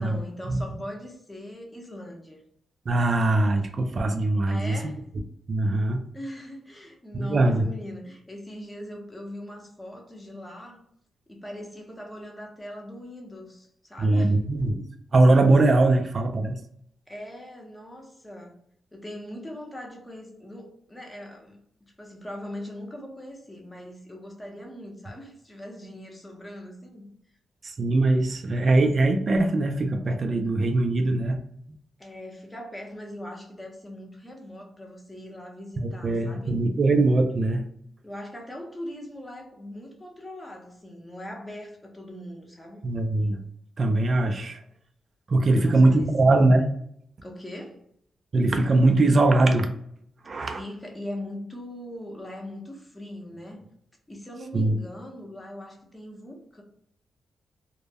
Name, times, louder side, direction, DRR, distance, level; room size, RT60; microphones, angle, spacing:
voice 1, 0.0-2.4 4.4-5.0 6.1-10.8 11.3-14.4 17.1-18.6 18.9-27.1 32.0-36.6 38.0-42.8 45.5-46.1 47.2-47.8 50.4-53.7 54.1-56.6, left 1 dB, 10° left, 0.7 m, -40 dB
voice 2, 2.9-4.8 5.5-6.0 7.1-7.6 14.0-14.9 15.1-16.6 27.6-31.4 35.8-37.6 42.8-43.4 43.8-44.6 45.3-46.7 48.3-49.7 50.2-50.6 54.5-54.7, right 2 dB, 40° right, 0.3 m, -21 dB
2.1 x 2.0 x 3.3 m
cardioid pair, 115°, 0 cm